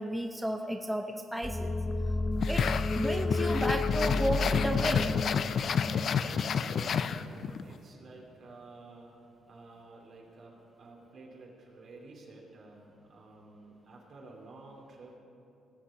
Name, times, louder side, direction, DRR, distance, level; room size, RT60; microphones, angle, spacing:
voice 1, 0.0-1.7 2.5-2.7 2.9-5.2, right 1 dB, 5° right, 4 dB, 0.6 m, -33 dB
sound 1, 1.4-6.9, left 2 dB, 20° left, 0.9 m, -32 dB
sound 2, 2.4-7.6, left 7 dB, 55° left, 0.4 m, -30 dB
voice 2, 6.2-9.1 9.5-15.2, right 2 dB, 60° right, -2 dB, 2.9 m, -51 dB
18.5 x 6.9 x 5.0 m, 2.8 s
cardioid pair, 90°, 0 cm